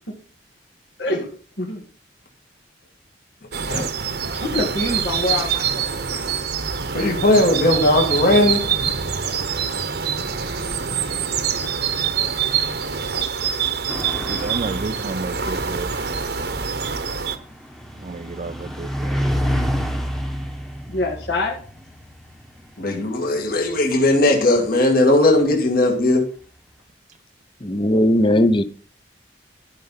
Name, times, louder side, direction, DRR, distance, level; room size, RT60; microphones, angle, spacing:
sound 1, 3.5-17.4, right 7 dB, 60° right, 1.0 m, -25 dB
voice 1, 4.3-5.8 6.1-6.3 20.9-21.6, left 2 dB, 70° left, 2.0 m, -25 dB
voice 2, 6.9-8.6 22.8-26.3, left 1 dB, 55° left, 2.1 m, -17 dB
sound 2, 13.9-24.8, equal, ahead, 1.1 m, -30 dB
voice 3, 14.2-15.9 18.0-19.2, right 3 dB, 40° right, 0.4 m, -31 dB
voice 4, 27.6-28.6, left 1 dB, 25° left, 0.8 m, -17 dB
12.0 x 5.5 x 5.8 m
head